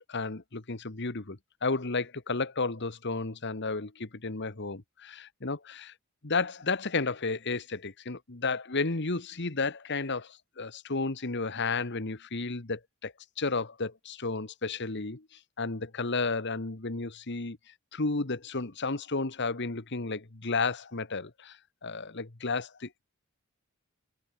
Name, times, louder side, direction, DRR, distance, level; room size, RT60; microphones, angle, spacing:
voice 1, 0.1-5.9 6.2-15.3 15.6-17.6 17.9-23.0, left 3 dB, 50° left, 1.5 m, -32 dB
head